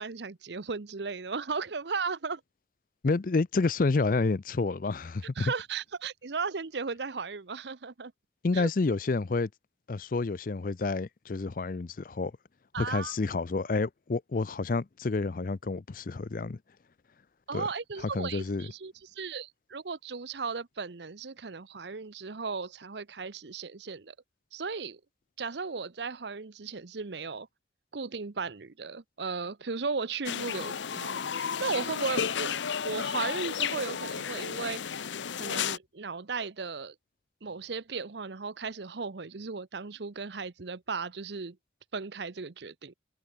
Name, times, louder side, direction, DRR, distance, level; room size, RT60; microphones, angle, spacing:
voice 1, 0.0-2.4 5.4-8.1 8.5-8.7 12.7-13.1 17.5-24.1 24.5-25.0 25.4-27.5 27.9-35.1 35.4-36.9 37.4-41.6 41.9-42.9, right 4 dB, 70° right, 0.8 m, -36 dB
voice 2, 3.0-5.5 8.4-9.5 9.9-12.3 12.8-16.6 17.5-17.7 18.0-18.7, left 3 dB, 50° left, 0.5 m, -29 dB
sound 1, 30.3-35.8, left 7 dB, 85° left, 0.7 m, -33 dB
head